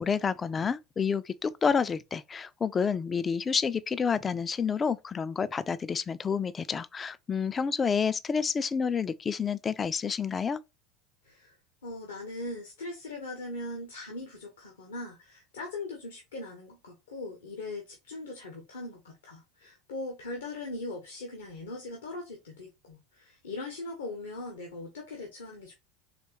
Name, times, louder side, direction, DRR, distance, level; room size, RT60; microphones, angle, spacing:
voice 1, 0.0-10.6, left 6 dB, 25° left, 0.4 m, -29 dB
voice 2, 11.2-11.6 11.8-25.7, left 2 dB, 75° left, 1.0 m, -40 dB
4.2 x 3.3 x 3.0 m
figure-of-eight pair, 75°, 0 cm